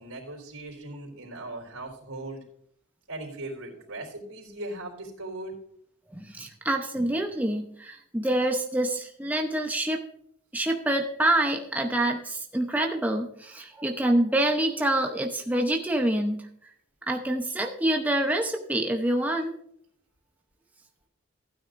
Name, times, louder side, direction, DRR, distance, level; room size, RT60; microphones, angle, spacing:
voice 1, 0.0-2.4 3.1-5.6, right 2 dB, 90° right, 0 dB, 3.7 m, -39 dB
voice 2, 6.1-10.0 10.5-16.7 17.1-19.5, right 1 dB, 5° right, 2 dB, 0.8 m, -26 dB
15.5 x 9.3 x 2.6 m, 0.67 s
head